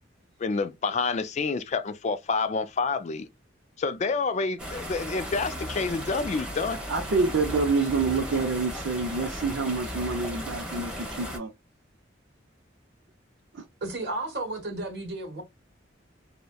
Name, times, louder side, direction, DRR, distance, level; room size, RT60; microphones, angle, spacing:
voice 1, 0.4-3.3 3.8-6.8, left 4 dB, 35° left, 0.3 m, -28 dB
sound 1, 4.6-11.4, equal, 5° right, 1.0 m, -36 dB
voice 2, 6.9-10.9 11.2-11.5 13.5-13.6, right 4 dB, 75° right, 0.5 m, -27 dB
voice 3, 13.8-15.4, right 2 dB, 60° right, 1.4 m, -33 dB
2.8 x 2.1 x 2.2 m
head